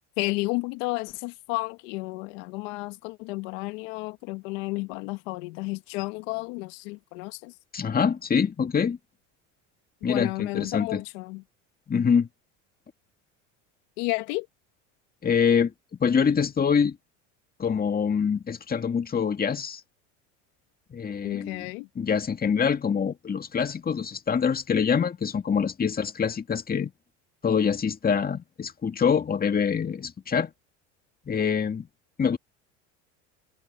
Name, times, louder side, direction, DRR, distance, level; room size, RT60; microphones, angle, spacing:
voice 1, 0.2-7.5 10.0-11.4 14.0-14.4 21.2-21.9, left 25 dB, 75° left, 1.6 m, -32 dB
voice 2, 7.7-9.0 10.0-11.0 11.9-12.3 15.2-15.7 16.0-17.0 17.6-19.8 20.9-26.9 27.4-30.5 31.3-31.9 32.2-32.4, left 6 dB, 25° left, 2.0 m, -25 dB
supercardioid pair, 95°, 37 cm